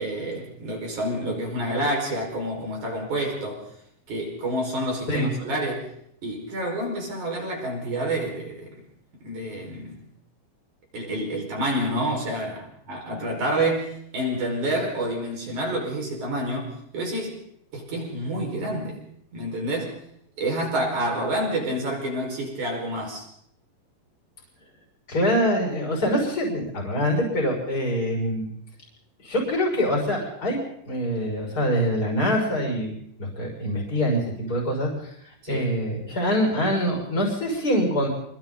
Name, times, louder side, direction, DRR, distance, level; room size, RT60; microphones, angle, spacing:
voice 1, 0.0-3.6 4.1-5.9 6.2-8.7 9.2-10.0 10.9-17.4 17.7-19.0 19.3-20.0 20.4-23.2 35.4-35.7, right 1 dB, 45° right, 0 dB, 6.4 m, -28 dB
voice 2, 25.1-28.5 29.2-30.6 30.9-35.1 35.5-38.1, equal, 20° left, -1 dB, 6.5 m, -24 dB
28.0 x 23.0 x 4.0 m, 0.72 s
omnidirectional pair, 5.1 m